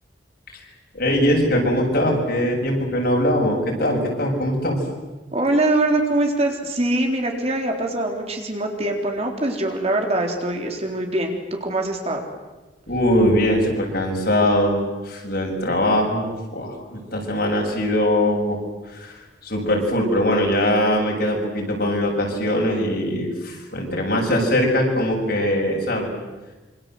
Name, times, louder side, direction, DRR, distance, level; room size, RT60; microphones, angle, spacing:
voice 1, 0.9-4.8 12.9-18.6 18.9-19.1 19.4-26.1, left 1 dB, 60° left, 0 dB, 7.7 m, -21 dB
voice 2, 5.3-12.2, right 1 dB, 35° right, 2 dB, 3.9 m, -23 dB
27.0 x 26.5 x 8.0 m, 1.2 s
head